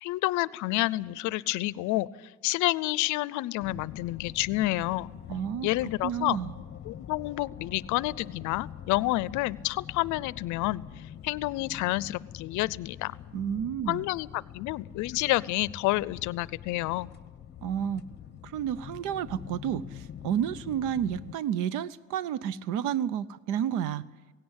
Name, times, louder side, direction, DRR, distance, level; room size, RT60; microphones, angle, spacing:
voice 1, 0.0-5.1 5.6-6.4 6.8-10.8 11.2-13.2 13.9-17.1, left 18 dB, 70° left, 21 dB, 0.6 m, -29 dB
sound 1, 3.6-21.4, left 10 dB, 35° left, 1.0 m, -45 dB
voice 2, 5.3-5.7 6.0-6.5 13.3-14.0 17.6-18.0 18.5-19.8 20.2-24.0, right 9 dB, 75° right, 19 dB, 0.8 m, -30 dB
17.5 x 17.0 x 9.7 m, 1.3 s
cardioid pair, 145°, 31 cm